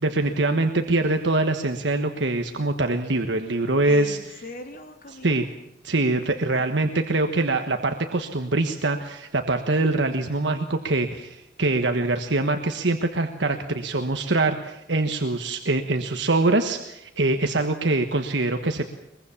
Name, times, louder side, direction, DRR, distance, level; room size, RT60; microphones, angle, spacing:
voice 1, 0.0-4.2 5.2-5.5 5.8-18.9, right 2 dB, 70° right, 6 dB, 1.4 m, -24 dB
voice 2, 3.8-5.4 6.6-7.2, left 2 dB, 50° left, 5 dB, 3.0 m, -41 dB
22.5 x 22.0 x 7.3 m, 0.81 s
head